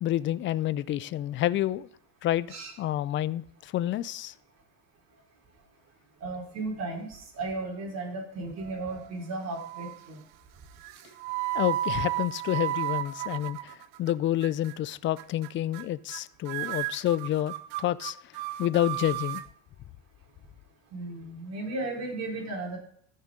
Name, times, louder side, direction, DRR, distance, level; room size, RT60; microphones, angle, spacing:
voice 1, 0.0-1.9 2.2-2.5 2.8-4.3 11.5-18.2 18.6-19.4, left 13 dB, 30° left, 0.4 m, -29 dB
voice 2, 6.2-10.2 20.9-22.8, right 2 dB, 40° right, 4.3 m, -35 dB
sound 1, 8.6-9.2 9.5-10.0 10.8-14.1 14.4-14.8 15.2-15.5 15.7-15.8 16.1-16.2 16.5-19.5, right 15 dB, 70° right, 0.7 m, -34 dB
14.5 x 6.7 x 3.7 m
supercardioid pair, 110°, 38 cm